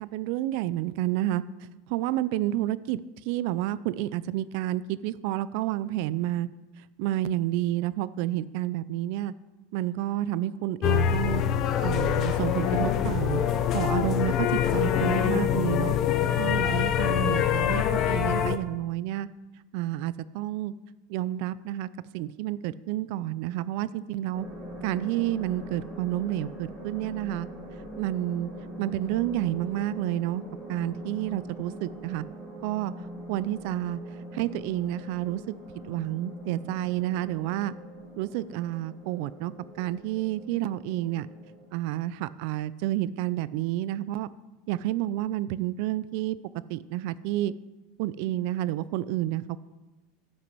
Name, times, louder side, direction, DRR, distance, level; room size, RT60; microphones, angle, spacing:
voice 1, 0.0-1.4 1.9-6.5 6.8-9.3 9.7-11.4 11.8-13.4 13.7-16.0 16.4-19.3 19.7-20.7 21.1-21.9 22.1-24.5 24.8-27.5 28.0-28.5 28.8-30.4 30.7-32.2 32.6-32.9 33.3-34.0 34.3-35.5 35.9-37.7 38.2-41.3 41.7-44.3 44.7-46.4 46.7-47.5 48.0-49.6, right 14 dB, 60° right, 17 dB, 0.4 m, -30 dB
sound 1, 10.8-18.6, left 9 dB, 40° left, 0.6 m, -25 dB
sound 2, 24.3-41.8, right 1 dB, 5° right, 3.0 m, -42 dB
9.2 x 6.2 x 6.1 m, 1.1 s
supercardioid pair, 135°, 0 cm